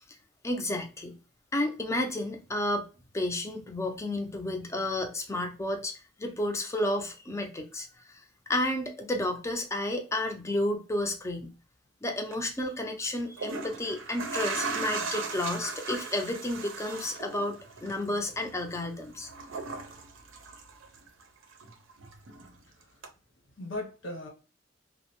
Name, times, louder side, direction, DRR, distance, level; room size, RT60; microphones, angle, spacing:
voice 1, 0.4-1.1 1.5-2.9 3.1-8.2 8.5-11.5 12.0-17.6 17.8-19.3, left 1 dB, 15° left, 0.4 m, -31 dB
sound 1, 12.2-12.4 13.2-21.2 21.5-22.6 23.0-23.1, right 3 dB, 85° right, 0.5 m, -38 dB
voice 2, 22.7-23.0 23.6-24.3, left 1 dB, 75° left, 1.0 m, -38 dB
2.6 x 2.0 x 2.8 m
head